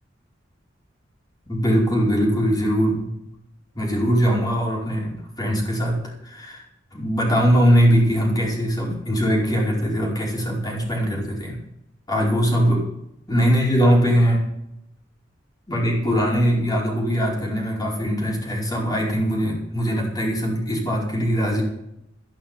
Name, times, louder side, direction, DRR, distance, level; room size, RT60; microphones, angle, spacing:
voice 1, 1.5-3.1 3.8-6.6 6.9-11.6 12.1-12.9 13.3-14.5 15.7-21.6, equal, 20° left, -3 dB, 5.1 m, -21 dB
14.0 x 11.5 x 5.6 m, 0.82 s
head